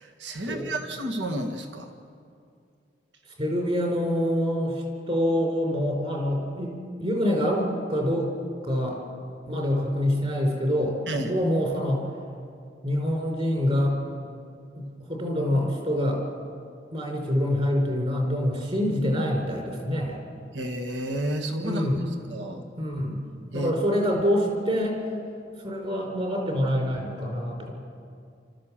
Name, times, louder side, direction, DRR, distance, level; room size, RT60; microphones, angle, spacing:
voice 1, 0.0-1.9 11.1-11.3 20.5-21.8 22.3-22.6 23.5-23.7, right 1 dB, 80° right, 5 dB, 1.7 m, -31 dB
voice 2, 3.4-8.3 8.6-9.0 9.5-12.0 12.8-14.0 14.8-16.2 16.9-20.2 21.6-22.1 22.8-23.2 23.5-25.0 25.6-27.7, equal, 35° right, 1 dB, 4.6 m, -26 dB
28.0 x 13.5 x 7.5 m, 2.4 s
head